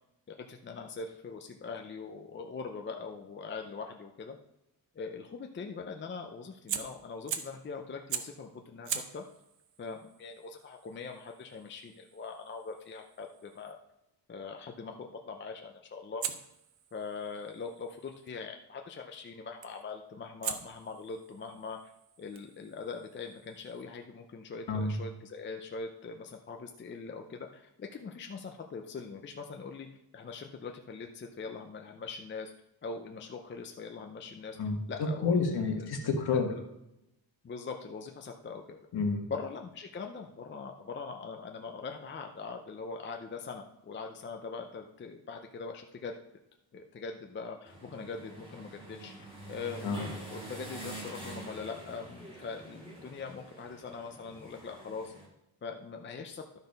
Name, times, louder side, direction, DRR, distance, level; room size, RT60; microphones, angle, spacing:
voice 1, 0.3-4.4 4.9-9.2 9.8-13.8 14.3-16.2 16.9-21.9 22.2-29.9 30.1-32.5 32.8-34.6 34.9-35.5 35.8-35.9 36.3-36.6 37.4-38.9 39.3-46.1 46.7-49.1 49.5-55.1 55.6-56.4, left 4 dB, 25° left, 3 dB, 0.6 m, -42 dB
Fire, 6.7-7.6 8.1-8.4 8.8-13.8 16.2-18.3 19.6-19.9 20.4-23.9, right 9 dB, 75° right, 0.9 m, -42 dB
voice 2, 34.6-36.5 38.9-39.3 49.8-50.1, left 4 dB, 55° left, 3 dB, 1.7 m, -29 dB
sound 1, 47.7-55.3, right 1 dB, 10° right, 2.9 m, -46 dB
12.5 x 4.1 x 5.3 m, 0.86 s
cardioid pair, 155°, 45 cm